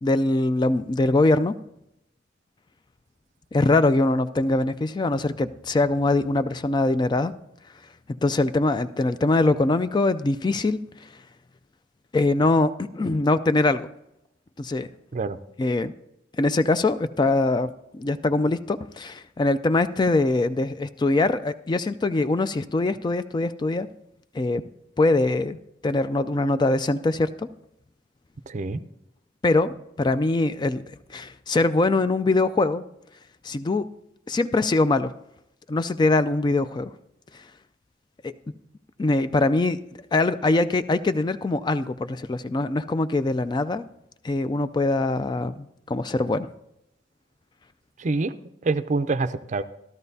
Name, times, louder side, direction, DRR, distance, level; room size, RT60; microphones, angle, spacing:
voice 1, 0.0-1.5 3.5-7.3 8.2-10.8 12.1-13.9 14.6-14.9 15.6-15.9 16.4-23.9 24.3-24.6 25.0-25.6 25.8-27.5 29.4-30.8 31.1-32.8 33.4-33.8 34.3-35.1 35.7-36.9 38.2-38.3 39.0-39.8 40.1-43.8 44.2-46.5, left 2 dB, 25° left, 12 dB, 0.3 m, -23 dB
voice 2, 28.5-28.8 48.0-48.3 48.6-49.6, right 3 dB, 40° right, 12 dB, 0.5 m, -26 dB
13.5 x 13.0 x 2.7 m, 0.81 s
head